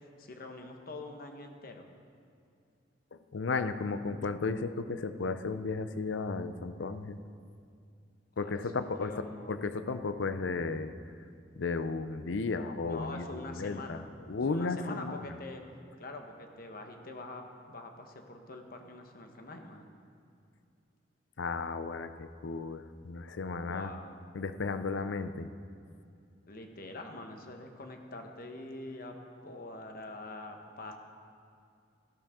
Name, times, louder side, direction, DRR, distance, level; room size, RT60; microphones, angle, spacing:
voice 1, 0.2-1.9 8.4-9.6 12.9-14.1 14.5-15.6 16.0-19.9 23.6-24.2 26.5-29.2 29.4-31.0, left 2 dB, 55° left, 4 dB, 1.1 m, -45 dB
voice 2, 3.1-7.2 8.4-9.1 9.5-10.9 11.6-13.2 13.5-14.0 14.3-15.2 21.4-23.9 24.3-25.5, left 4 dB, 80° left, 11 dB, 0.5 m, -34 dB
14.0 x 12.0 x 3.7 m, 2.4 s
head